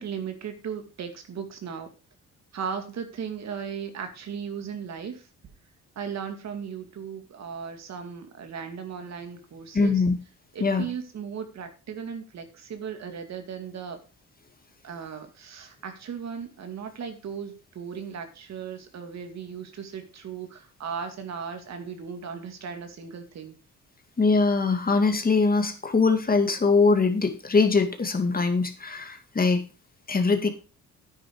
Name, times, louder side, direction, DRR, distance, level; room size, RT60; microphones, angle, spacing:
voice 1, 0.0-1.9 2.5-5.3 6.0-10.0 10.5-14.0 14.8-23.6, right 7 dB, 60° right, 6 dB, 2.3 m, -37 dB
voice 2, 9.7-10.1 10.6-10.9 24.2-29.6 30.1-30.5, left 4 dB, 30° left, 7 dB, 2.3 m, -22 dB
9.7 x 9.3 x 4.7 m, 0.33 s
cardioid pair, 90°, 30 cm